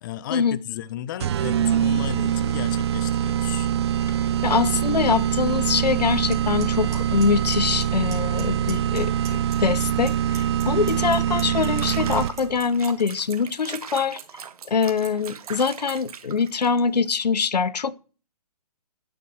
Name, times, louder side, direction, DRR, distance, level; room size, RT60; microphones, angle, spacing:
voice 1, 0.0-3.7, left 11 dB, 30° left, 0.6 m, -34 dB
sound 1, 1.2-12.6, right 10 dB, 40° right, 0.5 m, -24 dB
voice 2, 4.4-14.2 14.7-17.9, left 5 dB, 90° left, 0.9 m, -24 dB
Clock, 6.3-6.4 6.6-7.0 7.2-7.8 8.1-8.4 8.7-9.5 9.8-16.1, right 9 dB, 15° right, 3.0 m, -38 dB
Water / Bathtub (filling or washing), 11.6-17.1, right 7 dB, 65° right, 1.4 m, -41 dB
11.0 x 9.9 x 6.3 m
hypercardioid pair, 150°, 20 cm